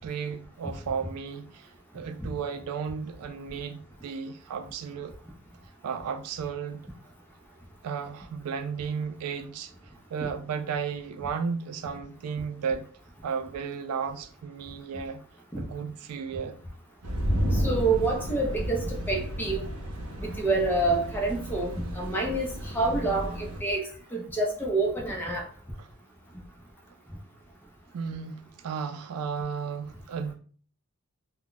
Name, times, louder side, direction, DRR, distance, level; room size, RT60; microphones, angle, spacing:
voice 1, 0.0-1.7 1.9-5.2 5.8-6.8 7.8-9.7 10.1-12.9 13.2-15.2 15.6-16.6 25.8-25.9 27.9-30.3, right 6 dB, 90° right, 0.4 m, -34 dB
sound 1, 17.0-23.6, equal, 75° right, 0.7 m, -32 dB
voice 2, 17.6-19.6 20.2-23.8 24.1-25.4, right 2 dB, 10° left, 0.6 m, -27 dB
2.2 x 2.1 x 3.8 m
head